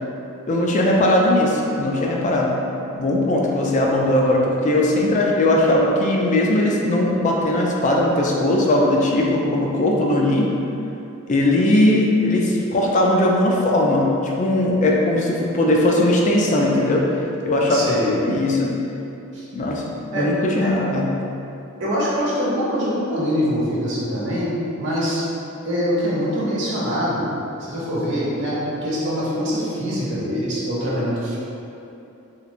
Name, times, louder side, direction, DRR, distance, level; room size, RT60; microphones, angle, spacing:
voice 1, 0.5-2.6 2.9-10.5 11.3-14.1 14.4-17.1 17.4-18.7 19.5-19.8 20.1-21.1, left 1 dB, 35° left, -2 dB, 0.4 m, -19 dB
voice 2, 17.7-18.1 19.3-19.4 20.1-20.3 20.6-20.8 21.8-24.5 24.8-25.2 25.6-27.3 27.6-31.4, equal, 55° right, -7 dB, 0.8 m, -24 dB
3.3 x 3.0 x 2.4 m, 2.8 s
head